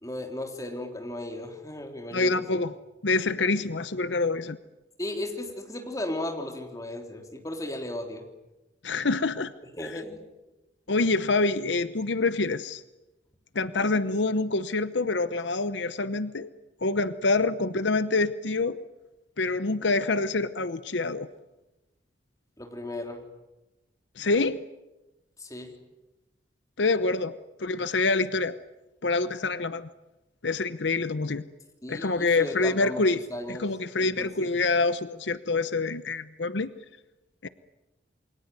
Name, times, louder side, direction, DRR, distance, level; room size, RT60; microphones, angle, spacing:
voice 1, 0.0-2.6 5.0-8.3 9.7-10.2 22.6-23.2 25.4-25.7 31.8-33.0 33.3-33.7 34.0-34.5, left 1 dB, 20° left, 3 dB, 3.6 m, -35 dB
voice 2, 2.1-2.7 3.0-4.6 8.8-9.5 10.9-12.8 13.5-16.5 16.8-18.8 19.4-21.3 24.2-24.6 26.8-28.6 29.0-29.9 30.4-31.4 31.9-33.2 33.5-36.7 37.4-37.5, left 3 dB, 80° left, 13 dB, 0.9 m, -26 dB
28.5 x 22.5 x 9.4 m, 1.0 s
head